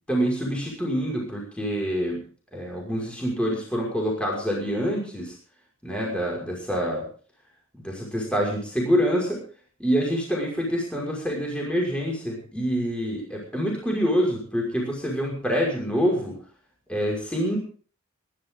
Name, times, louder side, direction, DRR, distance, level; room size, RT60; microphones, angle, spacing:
voice 1, 0.1-2.2 2.5-5.3 5.8-7.1 7.8-9.4 9.8-16.4 16.9-17.6, equal, 5° left, -2 dB, 5.8 m, -26 dB
25.0 x 12.5 x 3.9 m, 0.42 s
head